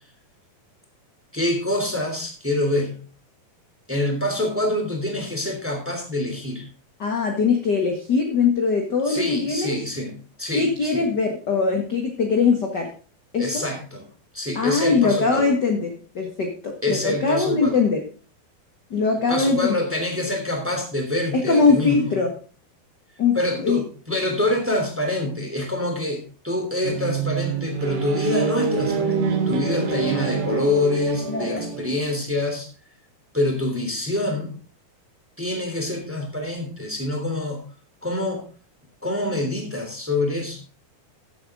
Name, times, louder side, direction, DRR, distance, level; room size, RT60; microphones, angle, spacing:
voice 1, 1.3-3.0 3.9-6.6 9.0-11.1 13.4-14.0 14.3-15.6 16.8-17.8 19.3-22.2 23.3-32.7 33.3-34.5 35.4-37.6 38.0-38.4 39.0-40.6, left 1 dB, 5° right, 3 dB, 2.4 m, -26 dB
voice 2, 7.0-9.8 10.5-12.9 13.3-13.6 14.5-18.0 18.9-19.7 21.3-22.3 23.2-23.8 31.3-31.7, left 4 dB, 40° left, 3 dB, 1.5 m, -21 dB
sound 1, 26.8-32.0, right 5 dB, 80° right, 4.3 m, -26 dB
14.5 x 8.6 x 3.7 m, 0.38 s
omnidirectional pair, 4.4 m